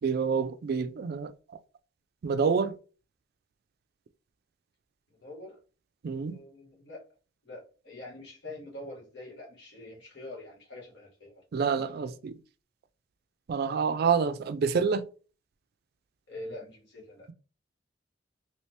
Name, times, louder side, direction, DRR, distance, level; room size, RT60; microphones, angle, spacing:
voice 1, 0.0-1.6 2.2-2.7 6.0-6.4 11.5-12.4 13.5-15.1, right 5 dB, 55° right, 0.3 m, -28 dB
voice 2, 5.1-5.6 6.2-7.0 7.4-11.4 11.8-11.9 16.3-17.3, left 1 dB, 65° left, 1.3 m, -45 dB
3.2 x 2.9 x 2.8 m
head